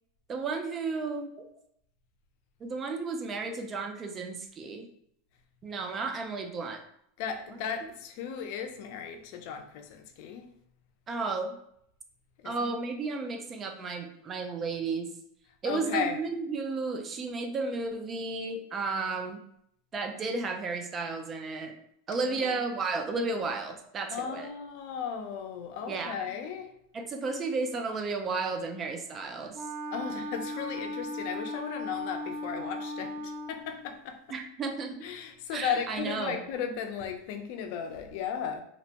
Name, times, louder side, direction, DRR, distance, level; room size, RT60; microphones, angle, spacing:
voice 1, 0.3-1.5 2.6-4.9 5.6-6.8 11.1-11.6 12.4-15.1 15.6-19.4 19.9-21.7 22.1-24.5 25.9-26.3 26.9-29.6 34.3-35.0 35.5-36.4, right 3 dB, 25° right, 5 dB, 0.4 m, -33 dB
voice 2, 7.2-10.5 12.4-12.7 15.6-16.2 22.3-22.6 24.1-26.7 29.9-34.2 35.0-38.6, left 7 dB, 60° left, 6 dB, 0.4 m, -35 dB
Wind instrument woodwind instrument, 29.5-33.8, left 1 dB, 50° right, 1.4 m, -37 dB
2.9 x 2.1 x 2.8 m, 0.71 s
supercardioid pair, 125°, 0 cm